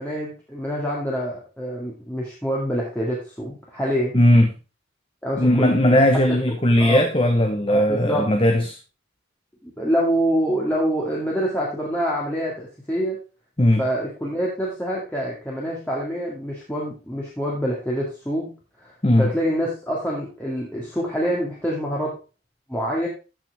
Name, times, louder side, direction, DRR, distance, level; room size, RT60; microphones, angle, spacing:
voice 1, 0.0-4.2 5.2-6.0 6.3-6.4 6.8-7.0 7.7-8.3 9.6-13.2 13.8-18.5 18.8-18.9 19.2-22.1 22.7-23.1, equal, 10° left, -5 dB, 2.2 m, -26 dB
voice 2, 4.1-4.5 5.4-8.8 13.6-13.8 19.0-19.3, left 1 dB, 25° left, 5 dB, 1.0 m, -17 dB
14.0 x 5.9 x 3.6 m, 0.32 s
head